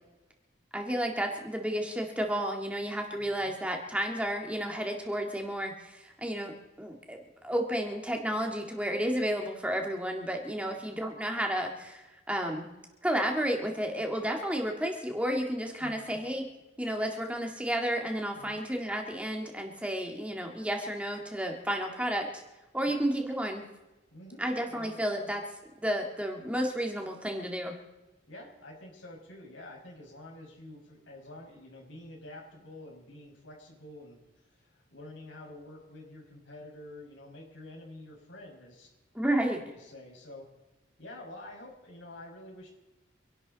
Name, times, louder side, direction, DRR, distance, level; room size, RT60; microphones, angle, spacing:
voice 1, 0.7-12.7 13.0-16.5 16.8-22.4 22.7-23.6 24.4-25.4 25.8-27.8 39.1-39.6, equal, 5° right, 2 dB, 2.0 m, -32 dB
voice 2, 3.1-3.5 10.6-10.8 15.8-16.2 18.4-18.6 22.9-23.0 24.1-24.5 24.7-25.0 28.3-38.9 39.4-40.5 41.0-42.7, left 1 dB, 85° left, -1 dB, 5.9 m, -48 dB
26.5 x 12.0 x 4.1 m, 1.1 s
head